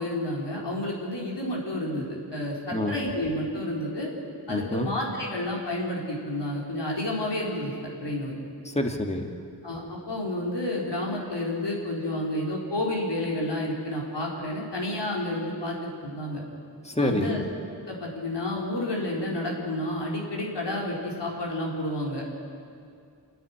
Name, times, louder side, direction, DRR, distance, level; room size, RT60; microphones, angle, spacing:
voice 1, 0.0-4.1 4.5-7.7 8.0-8.3 9.6-16.4 17.0-17.5 17.9-22.3, left 1 dB, 75° left, -3 dB, 4.4 m, -30 dB
voice 2, 4.5-4.9 8.7-9.3 16.8-17.4, left 1 dB, 15° left, 4 dB, 1.9 m, -27 dB
28.0 x 9.4 x 9.8 m, 2.4 s
wide cardioid pair, 75°, 42 cm